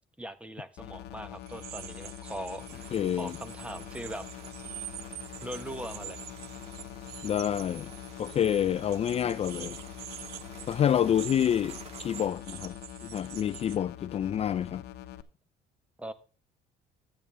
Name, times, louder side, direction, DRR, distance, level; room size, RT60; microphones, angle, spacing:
voice 1, 0.2-4.3 5.4-6.2 16.0-16.1, equal, 5° right, 1.0 m, -40 dB
sound 1, 0.8-15.2, left 12 dB, 80° left, 0.9 m, -44 dB
sound 2, 1.4-13.8, right 13 dB, 70° right, 0.6 m, -46 dB
sound 3, 2.6-12.3, right 4 dB, 40° right, 1.7 m, -52 dB
voice 2, 2.9-3.4 7.2-7.9 8.2-9.8 10.7-12.8 13.0-14.8, left 9 dB, 40° left, 0.4 m, -28 dB
12.5 x 8.8 x 3.4 m
cardioid pair, 110°, 17 cm